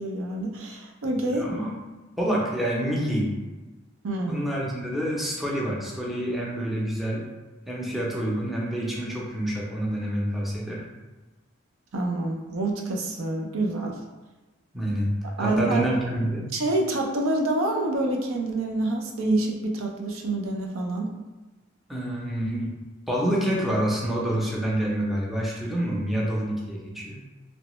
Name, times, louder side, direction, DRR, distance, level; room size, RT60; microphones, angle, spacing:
voice 1, 0.0-1.5 4.0-4.5 11.9-14.0 15.4-15.9 16.5-21.1, right 2 dB, 85° right, 1 dB, 0.5 m, -27 dB
voice 2, 1.3-1.7 2.2-3.3 4.3-7.2 7.7-10.8 14.7-15.1 15.4-16.5 21.9-22.7 23.1-27.2, right 1 dB, ahead, -5 dB, 0.5 m, -27 dB
3.0 x 2.1 x 3.0 m, 1.1 s
head